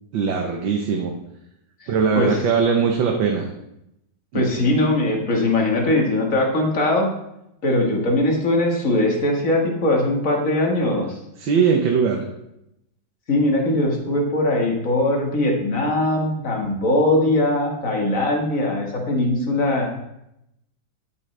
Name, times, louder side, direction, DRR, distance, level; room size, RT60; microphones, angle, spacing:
voice 1, 0.1-1.2 1.9-3.5 4.3-4.7 11.4-12.3, right 6 dB, 85° right, 2 dB, 1.8 m, -21 dB
voice 2, 1.8-2.4 4.3-7.1 7.6-11.2 13.3-20.0, left 1 dB, 45° left, 0 dB, 2.1 m, -21 dB
12.5 x 8.1 x 3.3 m, 0.83 s
omnidirectional pair, 2.0 m